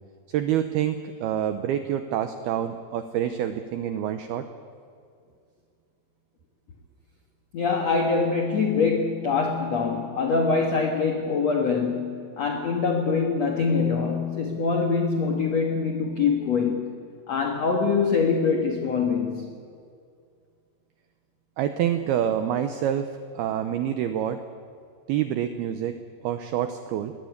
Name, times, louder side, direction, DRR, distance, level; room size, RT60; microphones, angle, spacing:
voice 1, 0.3-4.5 21.6-24.4 25.1-26.0 26.2-27.1, right 10 dB, 90° right, 9 dB, 2.2 m, -27 dB
voice 2, 7.5-16.9 17.3-19.5, left 5 dB, 75° left, 3 dB, 1.5 m, -24 dB
22.5 x 17.5 x 9.6 m, 2.3 s
omnidirectional pair, 5.6 m